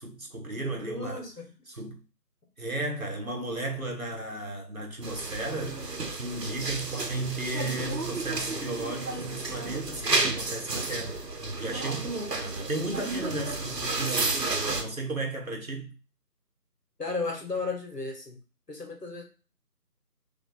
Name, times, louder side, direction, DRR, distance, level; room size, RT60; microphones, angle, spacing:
voice 1, 0.0-1.2 1.7-2.0 2.6-15.9, right 2 dB, 60° right, 1.4 m, -35 dB
voice 2, 0.9-1.4 17.0-18.4 18.7-19.2, left 3 dB, 80° left, 1.9 m, -34 dB
sound 1, 5.0-14.8, right 3 dB, 80° right, 1.0 m, -32 dB
3.5 x 3.4 x 3.9 m
figure-of-eight pair, 180°, 48 cm